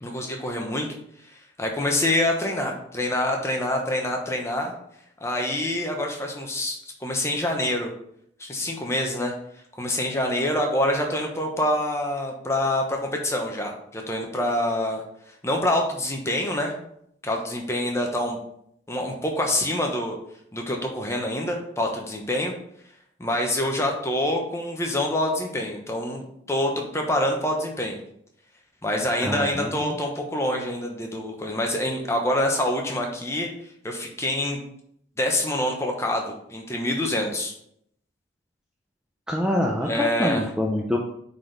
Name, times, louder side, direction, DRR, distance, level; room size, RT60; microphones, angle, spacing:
voice 1, 0.0-0.9 1.6-4.7 5.2-7.9 8.4-9.3 9.8-15.0 15.4-16.7 17.2-18.4 18.9-20.2 20.5-22.5 23.2-28.0 28.8-33.5 33.8-34.6 35.2-37.5 39.8-40.4, left 1 dB, 15° left, 1 dB, 0.9 m, -26 dB
voice 2, 29.2-30.0 39.3-41.0, left 1 dB, 5° right, -1 dB, 0.5 m, -25 dB
8.3 x 4.1 x 3.4 m, 0.72 s
head